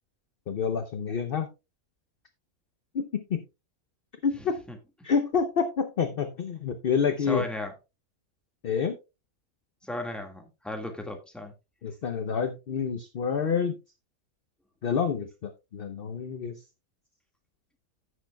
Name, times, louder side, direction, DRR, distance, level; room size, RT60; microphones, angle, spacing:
voice 1, 0.5-1.5 2.9-3.4 4.2-4.6 5.0-7.4 8.6-8.9 11.8-13.8 14.8-16.6, left 6 dB, 50° left, 0.8 m, -28 dB
voice 2, 7.2-7.7 9.8-11.5, left 1 dB, ahead, 1.6 m, -35 dB
15.5 x 6.5 x 2.2 m
omnidirectional pair, 1.5 m